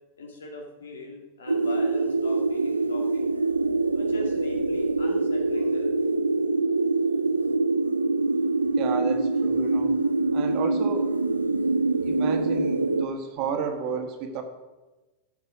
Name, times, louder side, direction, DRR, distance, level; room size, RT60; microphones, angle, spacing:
voice 1, 0.2-3.3 3.9-5.9, left 2 dB, 65° left, 1 dB, 2.3 m, -40 dB
sound 1, 1.5-13.0, right 3 dB, 80° right, 0.5 m, -24 dB
voice 2, 8.8-10.0 10.3-11.1 12.0-14.4, right 5 dB, 40° right, 5 dB, 1.6 m, -32 dB
13.5 x 7.3 x 5.1 m, 1.2 s
figure-of-eight pair, 90°, 0 cm